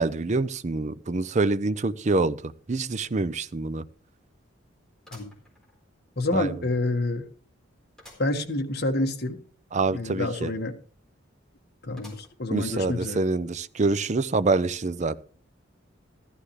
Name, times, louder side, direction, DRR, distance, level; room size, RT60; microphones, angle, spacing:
voice 1, 0.0-3.9 6.3-6.6 9.7-10.5 12.5-15.2, right 3 dB, 35° right, 14 dB, 0.5 m, -26 dB
sound 1, 2.8-2.9 3.3-3.4 5.0-6.1 6.6-6.7 8.0-8.4 8.8-8.9 9.1-9.2 12.0-12.6 13.2-13.3 14.2-14.3, left 1 dB, 5° left, 4.1 m, -52 dB
voice 2, 6.2-7.3 8.2-9.4 9.9-10.7 11.8-13.2, left 2 dB, 50° left, 4 dB, 1.6 m, -28 dB
14.5 x 13.0 x 3.2 m, 0.42 s
head